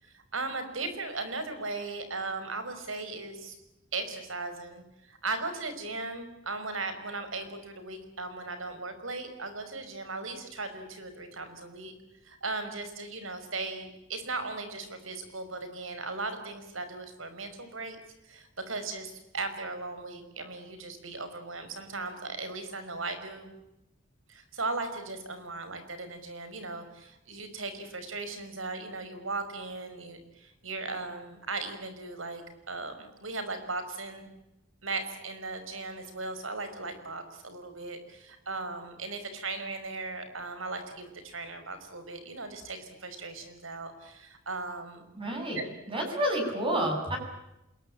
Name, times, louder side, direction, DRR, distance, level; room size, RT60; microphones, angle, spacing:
voice 1, 0.0-3.6 3.9-11.9 12.2-18.0 18.2-23.5 24.3-34.3 34.8-45.0 45.5-45.6, right 3 dB, 90° right, 9 dB, 5.5 m, -37 dB
voice 2, 45.2-45.6 45.9-47.2, right 1 dB, 25° right, 2 dB, 7.7 m, -29 dB
27.5 x 22.0 x 8.7 m, 0.90 s
head